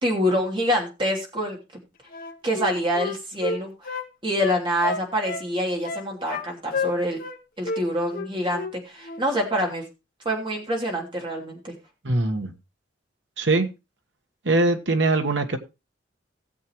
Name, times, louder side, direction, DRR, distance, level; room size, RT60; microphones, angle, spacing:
voice 1, 0.0-1.6 2.4-3.9 4.2-7.2 7.6-9.8 10.2-11.7, equal, 25° right, 2.9 m, -26 dB
Wind instrument woodwind instrument, 2.1-4.1 4.4-5.5 5.8-6.5 6.7-7.4 7.6-7.8 8.1-8.8 9.0-9.2, left 4 dB, 50° left, 1.1 m, -30 dB
voice 2, 12.0-12.5 13.4-13.7 14.4-15.6, right 2 dB, 75° right, 1.4 m, -22 dB
18.0 x 7.4 x 3.0 m
head